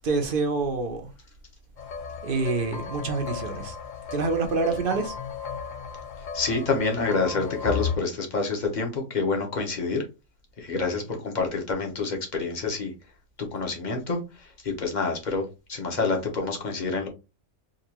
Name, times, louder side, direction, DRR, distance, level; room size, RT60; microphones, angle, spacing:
voice 1, 0.0-1.1 2.2-3.7 4.1-5.1, right 3 dB, 50° right, 0.7 m, -26 dB
sound 1, 1.8-8.0, left 7 dB, 80° left, 0.4 m, -35 dB
voice 2, 6.3-10.0 10.6-12.9 13.5-14.2 14.6-15.4 15.7-17.1, left 4 dB, 35° left, 1.0 m, -27 dB
3.8 x 2.6 x 2.9 m
omnidirectional pair, 1.5 m